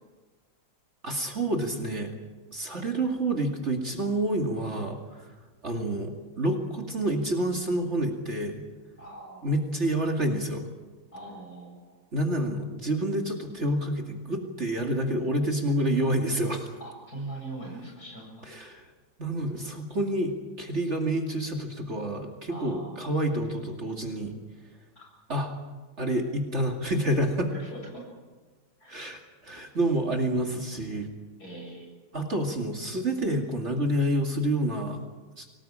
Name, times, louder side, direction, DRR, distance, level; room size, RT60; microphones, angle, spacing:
voice 1, 1.0-2.2 2.5-5.3 5.6-8.6 9.4-10.6 12.1-16.7 18.5-18.8 19.2-24.3 25.3-25.5 26.0-27.5 28.9-31.1 32.1-35.0 35.4-35.5, right 1 dB, 40° right, 2 dB, 2.7 m, -28 dB
voice 2, 9.0-9.5 11.1-12.0 16.8-18.5 22.5-23.0 25.0-25.1 27.5-28.1 28.8-29.0 31.4-31.9, right 2 dB, 55° left, 0 dB, 8.2 m, -41 dB
24.5 x 18.5 x 8.9 m, 1.3 s
omnidirectional pair, 1.9 m